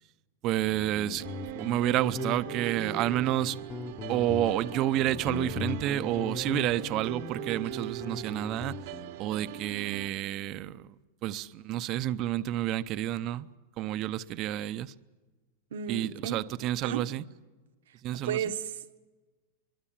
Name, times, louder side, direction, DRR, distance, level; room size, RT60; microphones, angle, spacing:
voice 1, 0.4-1.2 1.6-3.6 4.1-8.8 9.2-10.8 11.2-13.5 13.8-14.9 15.9-17.2 18.0-18.5, right 13 dB, 35° right, 0.7 m, -29 dB
Guitar, 0.6-9.1, left 6 dB, 20° left, 1.1 m, -39 dB
sound 1, 1.2-10.1, right 14 dB, 55° right, 1.1 m, -41 dB
voice 2, 15.7-16.4 16.8-17.1 18.1-19.0, right 8 dB, 85° right, 1.5 m, -34 dB
23.5 x 23.0 x 7.4 m
supercardioid pair, 160°, 0 cm